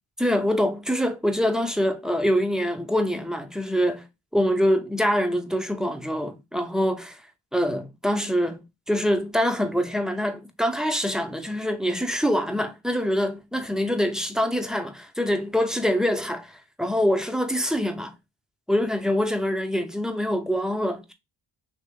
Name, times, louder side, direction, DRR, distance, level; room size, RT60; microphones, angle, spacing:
voice 1, 0.2-4.1 4.3-7.2 7.5-18.1 18.7-21.1, equal, ahead, 0.9 m, -25 dB
3.5 x 2.9 x 4.7 m
cardioid pair, 65°, 45 cm